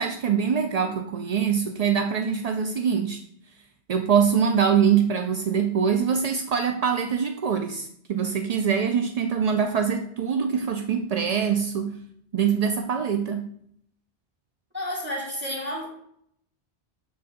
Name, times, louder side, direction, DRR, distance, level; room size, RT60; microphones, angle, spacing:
voice 1, 0.0-3.2 3.9-12.0 12.3-13.5, right 7 dB, 55° right, 5 dB, 0.4 m, -24 dB
voice 2, 14.7-15.9, equal, 10° right, -2 dB, 2.2 m, -31 dB
6.8 x 4.3 x 4.9 m, 0.68 s
omnidirectional pair, 1.1 m